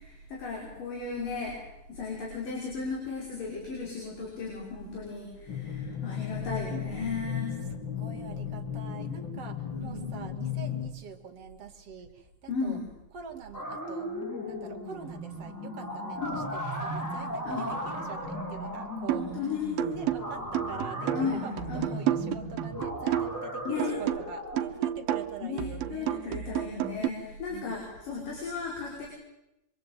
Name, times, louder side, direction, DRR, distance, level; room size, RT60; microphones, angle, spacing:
voice 1, 0.0-1.6 1.9-7.5 9.7-10.1 12.5-12.8 16.2-16.4 17.5-17.7 19.2-19.9 21.1-21.4 21.7-21.9 23.7-23.9 25.4-29.1, left 5 dB, 65° left, -2 dB, 7.3 m, -35 dB
sound 1, 5.5-10.9, left 8 dB, 35° left, 2.6 m, -35 dB
voice 2, 7.7-12.8 13.1-14.1 14.5-16.2 16.5-19.3 19.7-26.3 27.5-27.8, right 6 dB, 45° right, 4 dB, 3.3 m, -44 dB
sound 2, 13.5-24.6, equal, 20° left, 7.0 m, -36 dB
sound 3, 19.1-19.4 19.8-23.5 23.8-27.1, right 12 dB, 80° right, 3.0 m, -31 dB
25.5 x 25.0 x 8.9 m, 0.90 s
omnidirectional pair, 4.1 m